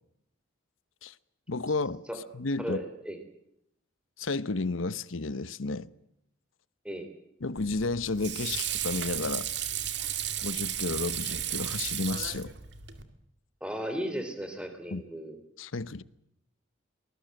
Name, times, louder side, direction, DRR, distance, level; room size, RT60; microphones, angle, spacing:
voice 1, 1.5-2.0 2.3-2.8 4.2-5.9 7.4-9.5 10.4-12.5 14.9-15.0 15.6-16.0, left 3 dB, 75° left, 0.9 m, -32 dB
voice 2, 2.6-3.2 6.8-7.1 13.6-15.4, equal, 5° right, 3.6 m, -35 dB
Water / Sink (filling or washing), 7.6-13.0, right 10 dB, 55° right, 2.2 m, -34 dB
24.0 x 20.0 x 7.8 m
head